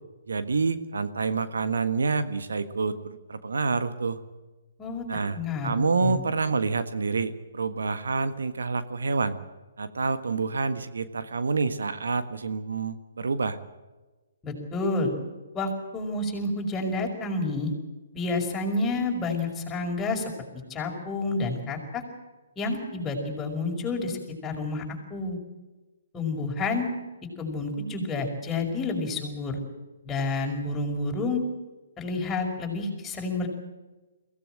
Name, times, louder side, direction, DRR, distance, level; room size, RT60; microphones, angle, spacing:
voice 1, 0.3-4.2 5.1-5.4 5.6-9.4 9.8-13.6, right 4 dB, 75° right, 11 dB, 1.5 m, -27 dB
voice 2, 5.3-6.2 14.4-15.1 15.5-17.7 18.1-20.3 20.7-22.0 22.6-24.8 25.1-25.4 26.1-26.9 27.4-29.6 30.0-31.4 32.0-33.5, left 3 dB, 15° left, 1 dB, 5.5 m, -29 dB
22.5 x 17.5 x 7.8 m, 1.2 s
figure-of-eight pair, 135°, 0 cm